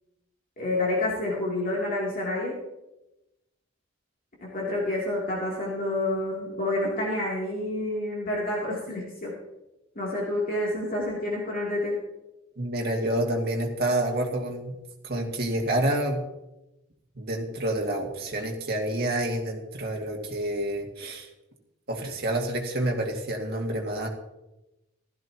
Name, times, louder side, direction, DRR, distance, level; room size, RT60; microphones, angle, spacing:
voice 1, 0.6-2.6 4.4-9.4 9.9-12.0, left 1 dB, 45° left, -5 dB, 2.9 m, -28 dB
voice 2, 12.6-14.7 15.0-16.2 17.2-21.3 21.9-24.1, right 1 dB, 50° right, 0 dB, 2.2 m, -28 dB
16.0 x 13.5 x 3.0 m, 0.96 s
head